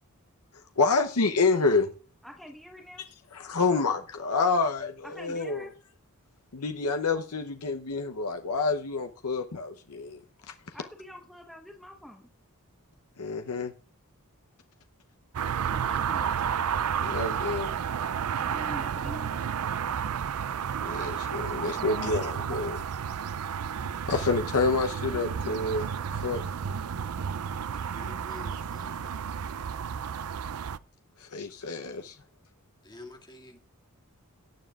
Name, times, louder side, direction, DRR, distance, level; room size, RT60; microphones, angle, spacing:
voice 1, 0.8-1.9 3.3-5.7 6.5-10.2 10.5-10.7 13.2-13.7 17.0-17.7 20.8-22.8 24.1-26.4 31.2-32.2, left 4 dB, 90° left, 0.8 m, -28 dB
voice 2, 2.2-3.0 5.0-5.7 10.7-12.3 15.7-16.4 18.4-19.3 21.7-22.2, equal, ahead, 1.2 m, -45 dB
sound 1, 15.3-30.8, right 7 dB, 75° right, 0.5 m, -32 dB
voice 3, 27.7-29.2 32.8-33.6, left 2 dB, 20° left, 2.2 m, -48 dB
18.0 x 9.3 x 2.4 m
head